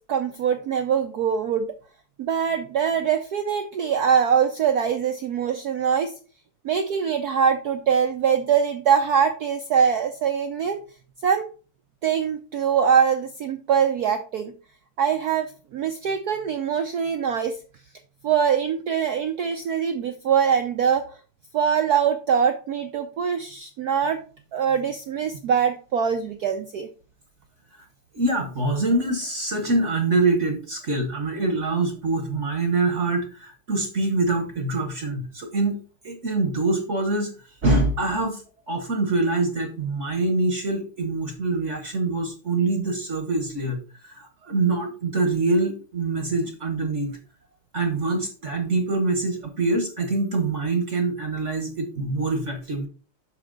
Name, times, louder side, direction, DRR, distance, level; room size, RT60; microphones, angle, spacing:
voice 1, 0.1-1.7 2.2-6.1 6.6-10.8 11.2-11.5 12.0-14.5 15.0-17.6 18.2-21.1 21.5-24.2 24.5-26.9, right 7 dB, 75° right, 7 dB, 0.8 m, -23 dB
voice 2, 28.1-37.3 37.6-38.4 38.7-43.8 44.0-47.2 47.7-52.9, right 2 dB, 45° right, 6 dB, 1.0 m, -24 dB
8.2 x 5.9 x 3.9 m, 0.37 s
omnidirectional pair, 2.4 m